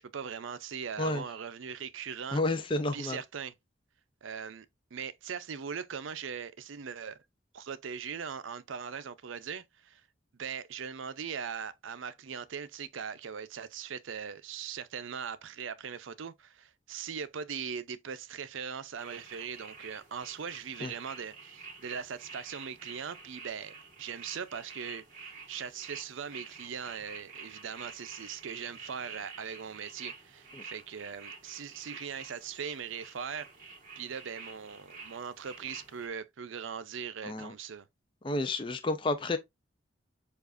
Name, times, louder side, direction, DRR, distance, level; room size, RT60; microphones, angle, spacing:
voice 1, 0.0-2.4 2.9-3.5 4.2-4.7 4.9-7.2 7.5-10.0 10.4-33.5 34.0-37.9, right 7 dB, 80° right, 0.5 m, -40 dB
voice 2, 2.3-3.2 20.8-20.9 37.2-37.5 38.2-39.4, left 2 dB, 25° left, 0.4 m, -30 dB
sound 1, 19.0-36.1, right 4 dB, 40° right, 1.9 m, -49 dB
7.0 x 2.4 x 2.5 m
head